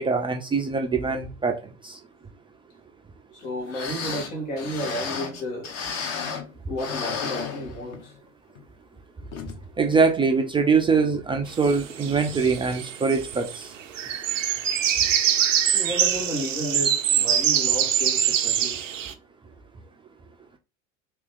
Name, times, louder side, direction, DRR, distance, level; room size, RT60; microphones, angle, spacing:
voice 1, 0.0-2.0 9.8-13.7, right 4 dB, 15° right, 0.4 m, -23 dB
voice 2, 3.3-5.8 6.7-8.1 15.7-18.8, equal, 70° left, 1.7 m, -32 dB
sound 1, 3.4-3.5 3.7-6.5 6.8-8.2 8.6-8.7 9.3-9.6 10.0-10.1, left 6 dB, 45° left, 0.9 m, -33 dB
sound 2, 11.6-13.6 13.9-19.1, right 9 dB, 80° right, 0.5 m, -24 dB
3.3 x 2.9 x 3.5 m
figure-of-eight pair, 70°, 37 cm